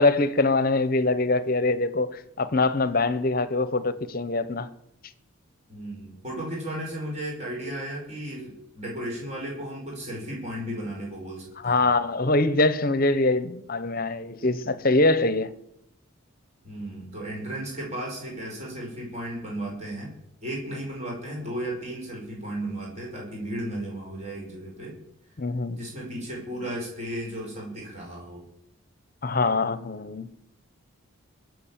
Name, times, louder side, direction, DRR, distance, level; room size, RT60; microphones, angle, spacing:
voice 1, 0.0-4.7 11.6-15.5 25.4-25.8 29.2-30.3, left 2 dB, 45° left, 0.9 m, -23 dB
voice 2, 5.7-11.8 16.6-20.1 20.4-25.0 25.8-28.4, right 1 dB, 30° right, 5.2 m, -34 dB
22.0 x 7.9 x 7.4 m
head